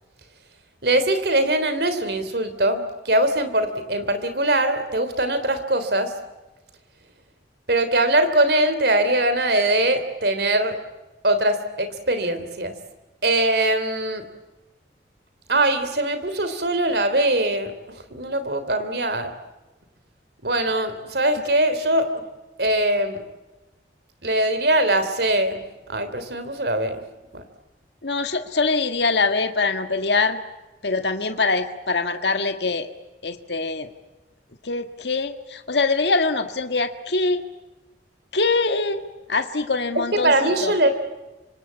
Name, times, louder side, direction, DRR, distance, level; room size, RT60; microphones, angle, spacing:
voice 1, 0.8-6.1 7.7-10.8 11.2-12.7 13.2-14.2 15.5-17.7 18.1-19.3 20.4-22.1 22.6-23.2 24.2-25.6 25.9-27.0 27.3-27.4 40.2-40.9, right 1 dB, 65° right, 10 dB, 3.3 m, -22 dB
voice 2, 28.0-30.4 30.8-32.9 33.2-33.9 34.6-37.4 38.3-39.0 39.3-40.7, left 3 dB, 75° left, 7 dB, 1.7 m, -23 dB
26.0 x 25.5 x 8.4 m, 1.1 s
head